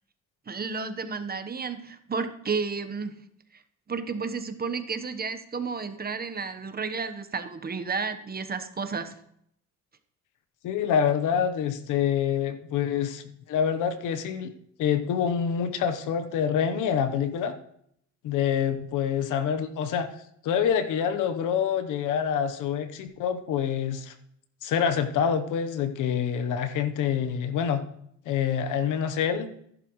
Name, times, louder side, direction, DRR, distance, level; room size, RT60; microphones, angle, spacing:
voice 1, 0.5-3.2 3.5-3.6 3.9-9.1, right 5 dB, 30° right, 9 dB, 1.1 m, -32 dB
voice 2, 10.6-14.5 14.8-17.5 18.2-20.1 20.4-24.1 24.6-27.8 28.3-29.5, left 8 dB, 90° left, 9 dB, 1.1 m, -26 dB
14.0 x 11.0 x 3.1 m, 0.71 s
cardioid pair, 90°, 30 cm